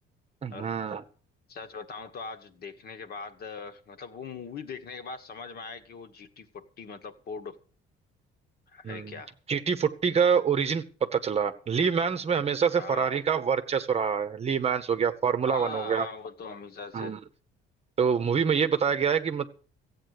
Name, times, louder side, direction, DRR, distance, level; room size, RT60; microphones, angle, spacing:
voice 1, 0.4-1.0 8.8-9.2 9.5-10.8 11.1-16.1 16.9-17.2 18.0-19.5, right 6 dB, 30° right, 1.0 m, -26 dB
voice 2, 1.5-7.6 8.7-9.3 12.8-13.1 15.5-17.2, left 4 dB, 45° left, 1.5 m, -41 dB
15.0 x 8.6 x 6.6 m
cardioid pair, 155°, 21 cm